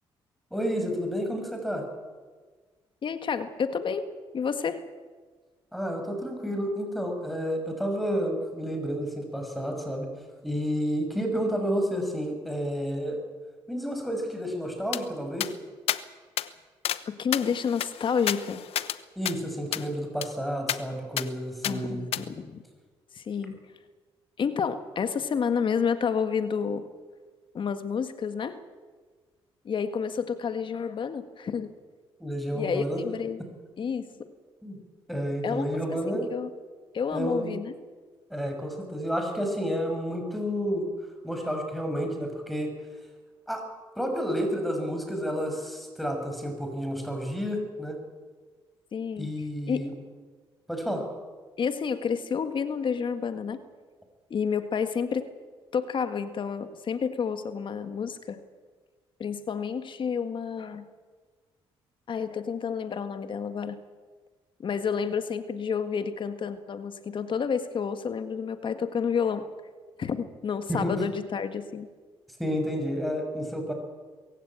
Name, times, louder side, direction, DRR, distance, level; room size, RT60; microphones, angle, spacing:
voice 1, 0.5-1.8 5.7-10.1 10.4-13.2 13.7-15.5 19.2-22.0 32.2-33.0 34.6-34.8 35.1-36.3 37.1-37.5 38.3-40.9 41.2-42.7 43.5-43.6 44.0-48.0 49.2-49.9 50.7-51.0 70.7-71.0 72.4-73.7, equal, ahead, 4 dB, 6.5 m, -30 dB
voice 2, 3.0-4.1 4.3-4.8 17.1-18.6 21.6-22.6 23.1-23.6 24.4-26.8 27.5-28.6 29.7-31.7 32.5-33.4 33.8-34.3 35.4-36.5 36.9-37.7 48.9-49.3 49.7-49.9 51.6-53.6 54.3-55.3 55.7-58.4 59.2-60.9 62.1-63.8 64.6-69.5 70.0-71.9, left 6 dB, 55° left, 10 dB, 1.8 m, -30 dB
sound 1, 14.9-15.0 15.4-15.5 15.9-16.0 16.4-16.5 16.8-17.0 17.3-19.0 19.2-19.4 19.7-19.9 20.2-20.3 20.7-20.8 21.2-21.3 21.6-21.7 22.1-22.2, left 11 dB, 75° left, 1.0 m, -30 dB
22.5 x 15.5 x 8.9 m, 1.4 s
cardioid pair, 75°, 10 cm